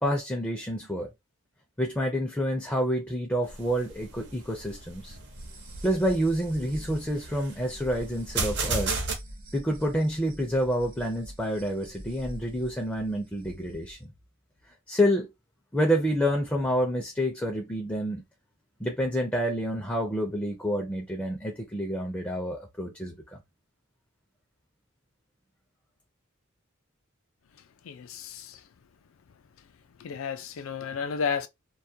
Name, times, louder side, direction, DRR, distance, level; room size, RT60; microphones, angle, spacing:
voice 1, 0.0-1.1 1.8-5.2 5.8-8.9 9.5-14.1 14.9-15.3 15.7-18.2 18.8-23.4, equal, 10° left, 0.4 m, -28 dB
sound 1, 3.4-9.1, right 3 dB, 55° right, 0.7 m, -35 dB
sound 2, 5.3-14.0, right 1 dB, 80° right, 0.9 m, -46 dB
voice 2, 27.9-28.6 30.0-31.5, left 6 dB, 70° left, 0.4 m, -32 dB
2.3 x 2.1 x 2.7 m
head